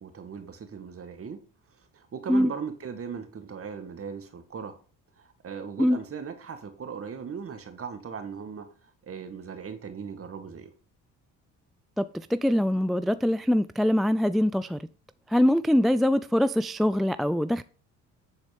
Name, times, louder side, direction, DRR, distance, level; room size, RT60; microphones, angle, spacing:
voice 1, 0.0-1.4 1.9-4.8 5.2-8.7 9.0-10.7, right 6 dB, 40° right, 2.0 m, -38 dB
voice 2, 12.0-14.8 15.3-17.6, equal, ahead, 0.3 m, -23 dB
9.7 x 4.2 x 5.3 m
supercardioid pair, 80°, 34 cm